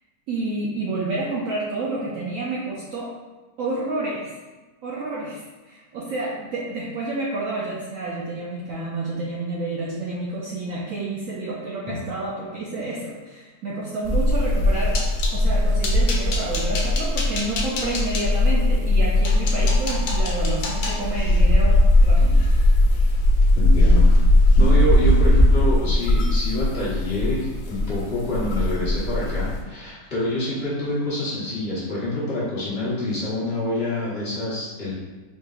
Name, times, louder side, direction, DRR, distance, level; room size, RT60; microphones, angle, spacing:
voice 1, 0.3-3.1 3.6-4.3 4.8-15.0 15.3-22.4, right 2 dB, 70° right, -3 dB, 0.8 m, -29 dB
sound 1, 14.0-29.6, left 1 dB, 60° left, 0.6 m, -19 dB
sound 2, 14.5-15.4 15.8-18.3 18.9-19.0 19.2-23.4 23.8-24.2 24.5-24.7 25.1-25.3, left 3 dB, 80° left, 1.2 m, -32 dB
voice 2, 23.5-24.2 24.6-34.9, left 1 dB, 40° left, -9 dB, 1.2 m, -26 dB
4.3 x 3.3 x 2.3 m, 1.2 s
omnidirectional pair, 1.8 m